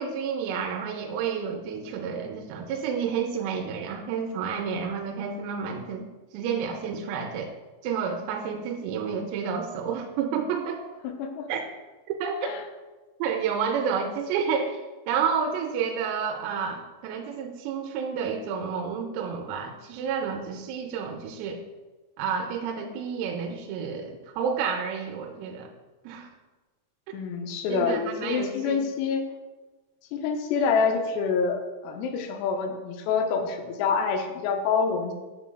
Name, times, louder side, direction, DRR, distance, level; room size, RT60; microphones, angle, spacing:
voice 1, 0.0-6.1 6.3-7.5 7.8-10.8 11.5-11.6 12.1-12.5 13.2-14.8 15.1-21.6 22.2-25.7 26.0-26.3 27.1-27.2 27.7-28.8, right 6 dB, 90° right, 2 dB, 3.3 m, -30 dB
voice 2, 11.0-11.5 12.4-12.6 27.1-29.2 30.1-35.1, left 5 dB, 85° left, 5 dB, 3.4 m, -27 dB
10.5 x 6.1 x 2.3 m, 1.3 s
omnidirectional pair, 6.0 m